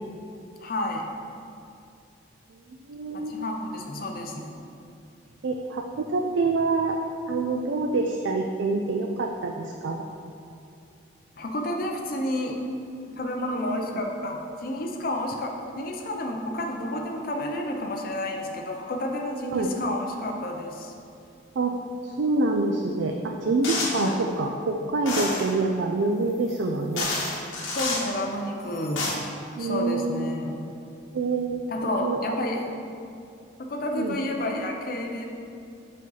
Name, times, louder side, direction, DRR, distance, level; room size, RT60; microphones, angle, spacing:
voice 1, 0.6-1.1 3.1-4.5 11.4-12.6 13.2-20.9 23.9-24.2 27.8-29.1 29.6-30.6 31.7-32.8 33.6-35.3, left 1 dB, 45° left, 1 dB, 0.6 m, -30 dB
voice 2, 2.9-3.3 5.4-7.0 7.3-10.0 19.5-19.7 21.6-21.7 22.0-27.1 29.6-30.3 31.1-31.6 32.0-32.4 33.9-34.2, right 3 dB, 70° right, 3 dB, 0.4 m, -26 dB
sound 1, 23.6-24.1 25.1-25.5 26.5-26.6 27.0-28.1 28.7-29.1, left 2 dB, 85° left, 1.1 m, -29 dB
5.5 x 5.1 x 3.9 m, 2.6 s
head